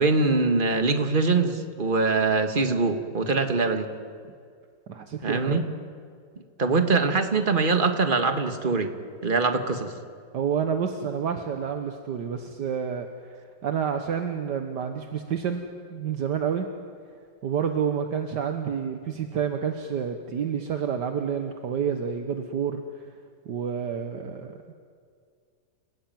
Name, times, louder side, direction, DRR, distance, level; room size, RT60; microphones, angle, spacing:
voice 1, 0.0-3.9 5.2-5.6 6.6-8.9 9.2-9.9, right 3 dB, 30° right, 7 dB, 1.8 m, -23 dB
voice 2, 4.9-5.6 10.3-13.1 13.6-15.6 15.9-16.7 17.4-22.8 23.5-24.6, right 7 dB, 70° right, 6 dB, 1.8 m, -29 dB
29.5 x 18.0 x 9.3 m, 2.2 s
omnidirectional pair, 2.0 m